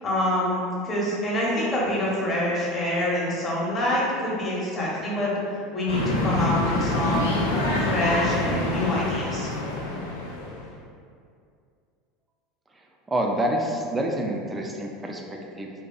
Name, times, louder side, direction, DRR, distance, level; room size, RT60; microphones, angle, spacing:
voice 1, 0.0-5.4 5.7-7.5 7.8-9.5, left 1 dB, 30° left, -6 dB, 0.8 m, -26 dB
sound 1, 5.9-10.7, left 2 dB, 80° left, 0.4 m, -26 dB
voice 2, 13.1-15.7, right 1 dB, 15° right, 0 dB, 0.3 m, -27 dB
2.6 x 2.2 x 2.2 m, 2.3 s
figure-of-eight pair, 75°, 0 cm